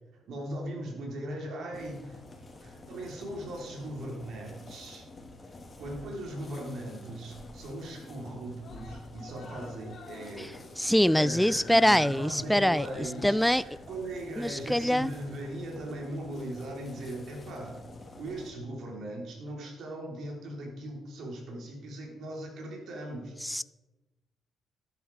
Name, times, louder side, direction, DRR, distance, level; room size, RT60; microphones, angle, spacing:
voice 1, 0.1-2.2 2.6-5.1 5.8-10.6 11.1-17.8 18.2-23.3, right 1 dB, 70° right, 3.7 m, -39 dB
sound 1, 1.7-18.5, left 2 dB, 30° left, 2.9 m, -49 dB
Screaming, 6.2-6.6 7.0-7.1 7.4-7.5 7.8-8.3 8.6-15.4 16.3-16.4, left 4 dB, 60° left, 2.7 m, -50 dB
voice 2, 10.8-13.6 14.4-15.1 23.4-23.6, equal, 5° left, 0.3 m, -24 dB
12.5 x 11.0 x 4.7 m
cardioid pair, 90°, 0 cm